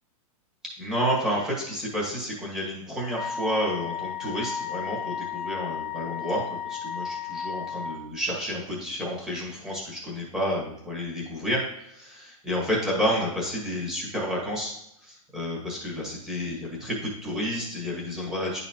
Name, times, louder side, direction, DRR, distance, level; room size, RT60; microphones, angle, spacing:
voice 1, 0.8-14.7 15.0-18.6, equal, 5° right, -5 dB, 1.5 m, -30 dB
Wind instrument woodwind instrument, 3.2-8.0, left 7 dB, 15° left, 0.5 m, -34 dB
10.5 x 4.1 x 2.9 m, 0.78 s
supercardioid pair, 175°, 19 cm